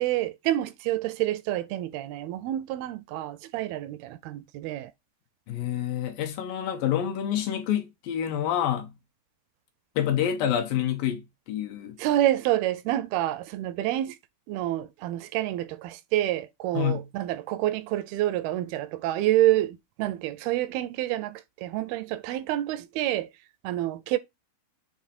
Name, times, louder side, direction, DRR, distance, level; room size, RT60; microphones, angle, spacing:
voice 1, 0.0-4.9 12.0-14.2 14.5-23.3 23.6-24.2, right 14 dB, 85° right, 2.4 m, -28 dB
voice 2, 5.5-8.9 10.0-12.0 16.7-17.1, left 10 dB, 75° left, 2.2 m, -27 dB
7.4 x 3.0 x 4.2 m
omnidirectional pair, 4.4 m